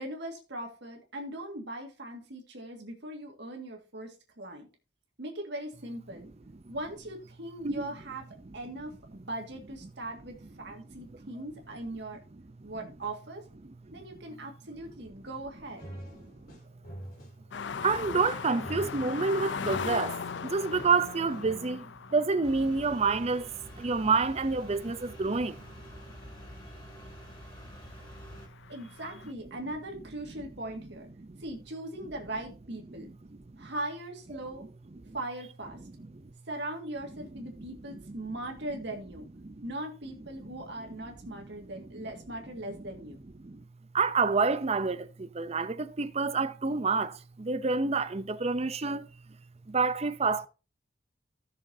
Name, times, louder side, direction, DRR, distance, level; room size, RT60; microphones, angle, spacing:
voice 1, 0.0-4.7 5.2-6.3 6.7-8.3 8.5-12.2 12.6-13.5 13.9-15.8 28.7-31.1 31.4-33.1 33.6-34.6 35.1-35.8 36.5-39.2 39.6-43.2, right 1 dB, 65° right, 1.9 m, -40 dB
sound 1, 15.8-21.5, equal, 50° left, 3.7 m, -46 dB
sound 2, 17.5-26.6 27.0-27.1 27.6-29.3, left 6 dB, 70° left, 0.5 m, -39 dB
voice 2, 17.8-20.2 20.4-25.6 31.2-31.4 33.6-33.7 35.1-35.2 36.1-36.2 37.5-38.2 39.4-39.6 40.4-40.5 41.4-41.5 43.4-43.6 43.9-49.1 49.7-50.5, right 4 dB, 35° right, 0.6 m, -28 dB
sound 3, 22.4-28.5, equal, 25° left, 4.2 m, -48 dB
16.5 x 6.6 x 2.7 m
head